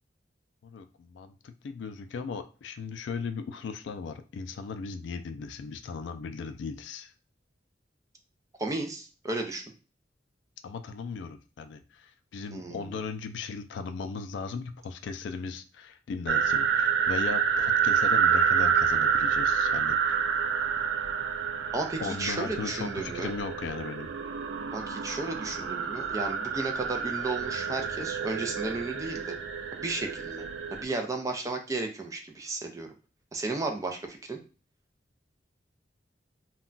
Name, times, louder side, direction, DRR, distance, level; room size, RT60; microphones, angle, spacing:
voice 1, 0.6-7.1 10.6-20.2 22.0-24.1, left 5 dB, 80° left, 8 dB, 0.3 m, -37 dB
voice 2, 8.6-9.6 12.5-13.0 21.7-23.3 24.7-29.4 29.8-30.4 30.7-32.9 33.3-34.4, right 3 dB, 20° right, 4 dB, 0.4 m, -33 dB
sound 1, 16.3-30.8, right 7 dB, 80° right, 0.3 m, -28 dB
2.2 x 2.2 x 3.7 m, 0.34 s
head